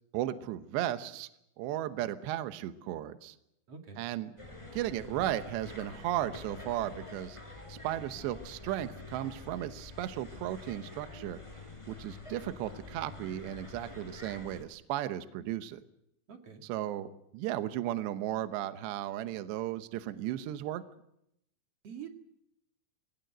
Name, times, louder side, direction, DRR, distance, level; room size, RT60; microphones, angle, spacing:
voice 1, 0.1-1.3 1.6-3.4 4.0-4.3 4.7-7.4 7.7-11.4 11.9-15.8 16.7-20.8, right 13 dB, 75° right, 10 dB, 2.8 m, -35 dB
voice 2, 3.7-4.0 16.3-16.6 21.8-22.1, right 7 dB, 45° right, 4 dB, 2.1 m, -45 dB
sound 1, 4.4-14.6, left 3 dB, 5° left, 3.9 m, -47 dB
22.5 x 19.0 x 8.0 m, 0.78 s
omnidirectional pair, 5.8 m